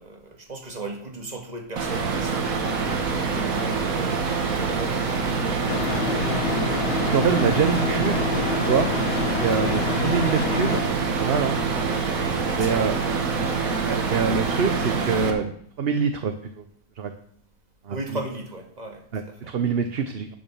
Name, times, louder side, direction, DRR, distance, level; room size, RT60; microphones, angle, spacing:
voice 1, 0.0-5.6 9.6-9.9 12.6-13.6 17.9-19.4, right 2 dB, 30° right, 3 dB, 2.0 m, -38 dB
sound 1, 1.8-15.3, right 4 dB, 75° right, 1.9 m, -25 dB
sound 2, 5.7-10.8, left 6 dB, 55° left, 0.9 m, -28 dB
voice 2, 7.0-8.3 8.6-8.9 9.4-10.8 11.1-11.6 12.6-12.9 13.8-15.5 15.8-16.6 17.0-17.1 17.9-18.0 19.1-20.3, right 6 dB, 50° right, 8 dB, 0.9 m, -25 dB
10.5 x 6.2 x 7.2 m, 0.64 s
omnidirectional pair, 1.5 m